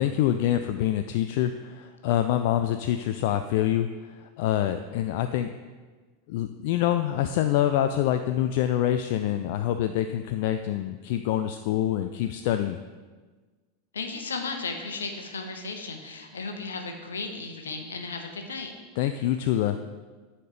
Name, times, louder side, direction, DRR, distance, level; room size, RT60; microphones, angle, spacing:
voice 1, 0.0-5.5 6.3-12.8 19.0-19.8, left 11 dB, 50° left, 8 dB, 0.3 m, -26 dB
voice 2, 13.9-18.7, left 4 dB, 70° left, 5 dB, 0.9 m, -35 dB
9.8 x 4.3 x 5.0 m, 1.4 s
figure-of-eight pair, 85°, 0 cm